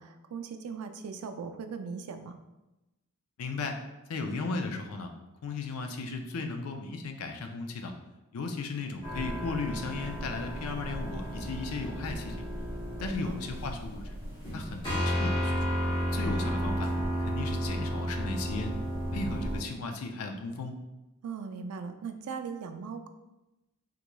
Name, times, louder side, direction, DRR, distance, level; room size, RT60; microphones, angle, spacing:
voice 1, 0.0-2.4 13.0-13.4 21.2-23.1, right 5 dB, 90° right, 7 dB, 0.3 m, -39 dB
voice 2, 3.4-3.8 4.1-5.1 5.4-7.9 8.3-12.4 13.0-14.2 14.5-15.7 16.0-16.9 17.2-18.8 19.1-20.8, left 3 dB, 85° left, 5 dB, 0.4 m, -36 dB
sound 1, 9.0-19.6, equal, 25° left, 1.0 m, -33 dB
3.6 x 3.0 x 2.2 m, 0.99 s
head